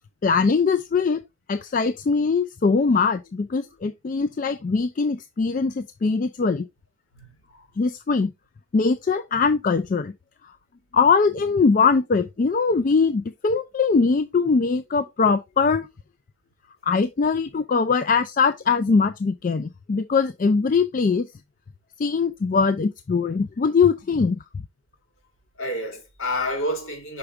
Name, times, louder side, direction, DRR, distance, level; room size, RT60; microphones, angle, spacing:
voice 1, 0.2-1.2 1.5-6.6 7.8-8.3 8.7-10.1 10.9-15.9 16.8-21.3 22.0-24.4, left 4 dB, 40° left, 0.3 m, -21 dB
voice 2, 7.1-7.6 25.6-27.2, left 1 dB, 70° left, 3.1 m, -29 dB
5.9 x 4.9 x 3.4 m
head